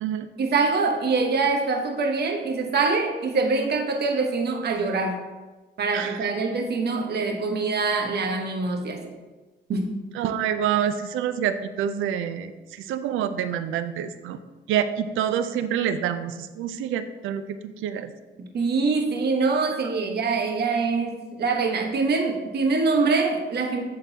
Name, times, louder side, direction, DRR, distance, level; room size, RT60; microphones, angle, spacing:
voice 1, 0.4-5.2 5.8-9.1 9.7-9.9 18.4-23.8, right 4 dB, 55° right, 3 dB, 1.1 m, -24 dB
voice 2, 10.2-12.5 12.8-14.4 14.7-18.1, right 9 dB, 85° right, 11 dB, 0.5 m, -27 dB
10.5 x 3.9 x 2.8 m, 1.2 s
cardioid pair, 90°, 20 cm